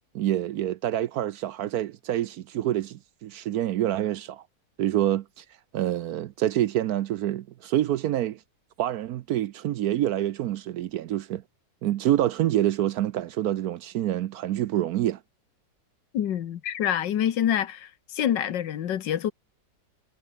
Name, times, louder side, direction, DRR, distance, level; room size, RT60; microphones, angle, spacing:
voice 1, 0.1-4.4 4.8-5.4 5.7-8.4 8.8-11.4 11.8-15.2, right 12 dB, 65° right, 1.0 m, -27 dB
voice 2, 16.1-19.3, left 10 dB, 80° left, 1.7 m, -26 dB
omnidirectional pair, 1.9 m